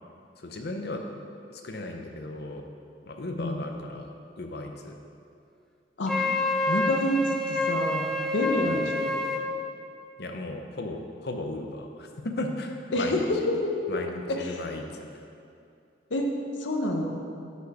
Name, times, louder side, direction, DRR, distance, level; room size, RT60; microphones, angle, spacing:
voice 1, 0.4-1.0 1.5-2.7 3.1-4.1 4.4-5.0 8.6-8.9 10.2-13.5 13.9-15.3, left 2 dB, 60° left, 4 dB, 0.6 m, -36 dB
voice 2, 6.0-6.4 6.7-9.2 12.9-14.0 14.3-14.6 16.1-16.3 16.6-17.1, left 1 dB, 90° left, 2 dB, 0.8 m, -28 dB
Wind instrument woodwind instrument, 6.1-9.4, left 2 dB, 5° left, 0.3 m, -28 dB
6.1 x 5.6 x 4.8 m, 2.5 s
head